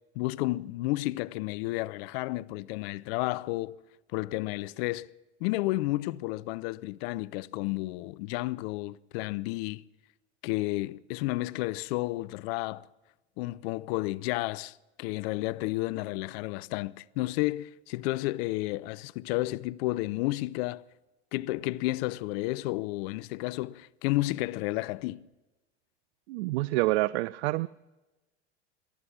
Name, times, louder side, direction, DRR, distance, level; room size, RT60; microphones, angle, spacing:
voice 1, 0.2-3.8 4.1-5.1 5.4-9.8 10.4-12.9 13.4-20.8 21.3-25.3, left 19 dB, 60° left, 0.6 m, -31 dB
voice 2, 26.3-27.7, right 19 dB, 65° right, 0.5 m, -27 dB
19.0 x 12.5 x 6.0 m
hypercardioid pair, 90°, 35 cm